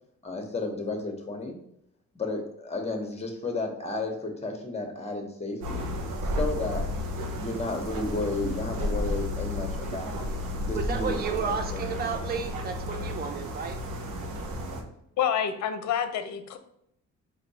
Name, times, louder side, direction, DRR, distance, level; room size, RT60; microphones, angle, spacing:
voice 1, 0.2-1.6 2.1-5.8 6.2-6.9 7.4-10.2 10.6-11.8, left 2 dB, 20° left, 3 dB, 1.1 m, -32 dB
sound 1, 5.6-14.8, left 1 dB, 85° right, 1.0 m, -32 dB
voice 2, 10.7-13.8 14.8-14.9, right 6 dB, 30° right, 5 dB, 0.6 m, -32 dB
voice 3, 15.2-16.6, left 8 dB, 65° left, 9 dB, 0.6 m, -28 dB
4.4 x 2.7 x 4.2 m, 0.75 s
cardioid pair, 90°, 30 cm